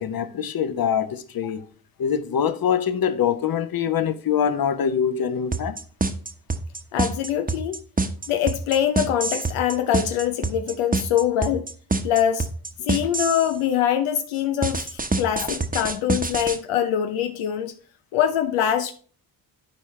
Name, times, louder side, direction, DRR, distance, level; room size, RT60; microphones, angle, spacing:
voice 1, 0.0-1.6 2.0-5.8, left 8 dB, 45° left, 1.0 m, -24 dB
Mersey Beat, 5.5-13.5 14.6-16.6, right 3 dB, 15° right, 1.0 m, -25 dB
voice 2, 6.9-7.8 8.3-11.6 12.0-12.5 12.8-17.7 18.1-18.9, left 10 dB, 80° left, 0.7 m, -23 dB
12.0 x 4.6 x 3.2 m
supercardioid pair, 50°, 49 cm